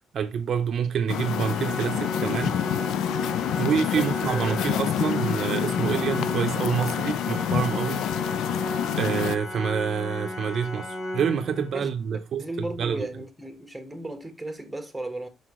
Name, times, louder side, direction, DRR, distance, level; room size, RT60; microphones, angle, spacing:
voice 1, 0.1-2.6 3.6-8.0 8.9-13.1, right 7 dB, 50° right, 0.6 m, -27 dB
sound 1, 1.1-9.4, left 11 dB, 85° left, 0.3 m, -28 dB
Organ, 1.1-12.0, left 1 dB, 20° left, 1.7 m, -34 dB
voice 2, 3.9-4.8 11.7-11.9 12.4-15.3, right 1 dB, 5° right, 1.2 m, -35 dB
5.9 x 5.4 x 3.0 m
cardioid pair, 130°, 0 cm